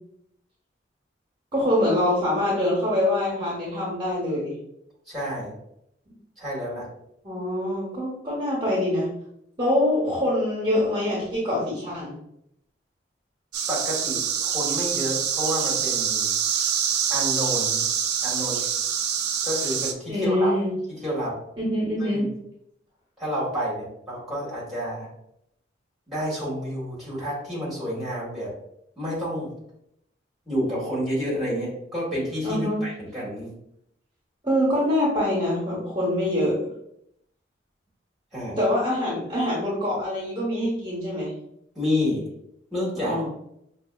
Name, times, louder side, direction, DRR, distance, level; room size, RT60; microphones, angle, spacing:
voice 1, 1.5-4.5 7.2-9.1 9.6-12.1 20.1-20.7 21.6-22.3 32.4-32.8 34.4-36.6 38.6-41.3 43.1-43.2, left 1 dB, 25° right, -7 dB, 0.9 m, -24 dB
voice 2, 5.1-5.5 6.4-6.9 13.7-16.3 17.1-17.8 18.2-18.6 19.4-20.5 20.9-21.4 22.0-22.3 23.2-25.1 26.1-28.5 29.0-29.5 30.4-33.5 38.3-38.6 41.7-42.2 42.7-43.2, equal, ahead, -7 dB, 1.5 m, -29 dB
sound 1, 13.5-19.9, right 8 dB, 60° right, 0.3 m, -25 dB
5.3 x 2.4 x 2.3 m, 0.76 s
head